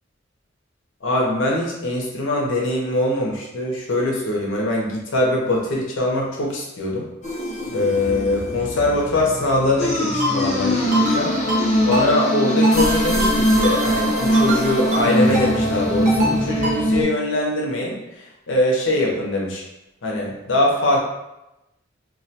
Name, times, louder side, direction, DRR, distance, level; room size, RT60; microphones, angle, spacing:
voice 1, 1.0-7.1 7.7-11.3 11.8-18.0 18.5-19.6 20.0-21.0, left 1 dB, 75° left, -2 dB, 0.7 m, -22 dB
sound 1, 7.2-17.0, equal, 40° left, 0.6 m, -21 dB
Ringtone, 10.2-10.3 10.9-11.2 11.5-11.6 11.9-12.0 12.6-12.9 13.2-13.3 13.6-13.8 14.3-14.6 14.9-15.0 15.3-15.5 16.0-16.3 16.6-16.8, equal, 40° right, 0.6 m, -24 dB
2.3 x 2.2 x 2.7 m, 0.92 s
head